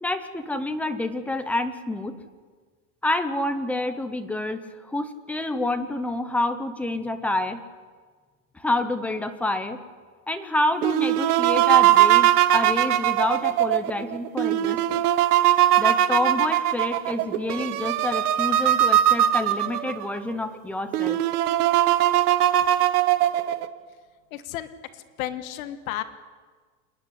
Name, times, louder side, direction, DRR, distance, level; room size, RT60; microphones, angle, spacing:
voice 1, 0.0-2.2 3.0-4.6 4.9-7.6 8.5-9.8 10.3-15.0 15.8-21.2, left 2 dB, 5° left, 8 dB, 0.6 m, -28 dB
sound 1, 10.8-20.1 20.6-20.7 20.9-23.7, right 13 dB, 85° right, 1.3 m, -20 dB
voice 2, 24.3-24.7 25.2-26.0, left 13 dB, 65° left, 10 dB, 1.4 m, -32 dB
27.5 x 10.5 x 9.8 m, 1.5 s
supercardioid pair, 170°, 44 cm